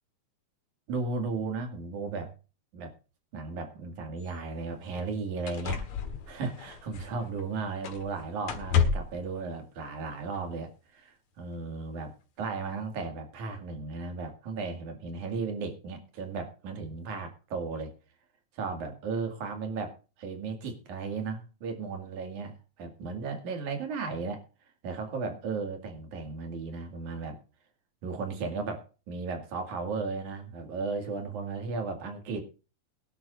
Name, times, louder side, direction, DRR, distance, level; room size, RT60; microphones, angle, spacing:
voice 1, 0.9-2.3 2.7-2.9 3.3-5.9 6.3-17.9 18.5-24.4 24.8-27.4 28.0-32.4, right 4 dB, 85° right, 5 dB, 3.6 m, -35 dB
sound 1, 4.2-4.3 4.9-5.1 5.5-7.4 7.8-8.1 8.4-9.2 10.3-10.4, left 6 dB, 70° left, 2.8 m, -30 dB
22.0 x 11.0 x 2.6 m, 0.33 s
omnidirectional pair, 3.3 m